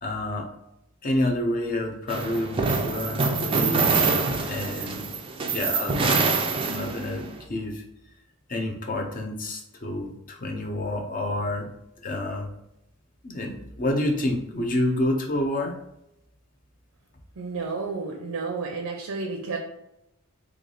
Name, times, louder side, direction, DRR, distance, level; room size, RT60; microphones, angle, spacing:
voice 1, 0.0-0.5 1.0-3.9 4.5-5.0 5.5-6.2 6.7-7.8 8.5-11.7 12.0-12.5 13.2-15.7, left 1 dB, 40° left, 2 dB, 0.6 m, -28 dB
sound 1, 2.1-7.3, right 4 dB, 25° right, 0.3 m, -25 dB
voice 2, 17.4-19.6, right 4 dB, 80° right, 1 dB, 0.5 m, -31 dB
3.2 x 2.4 x 3.8 m, 0.83 s
head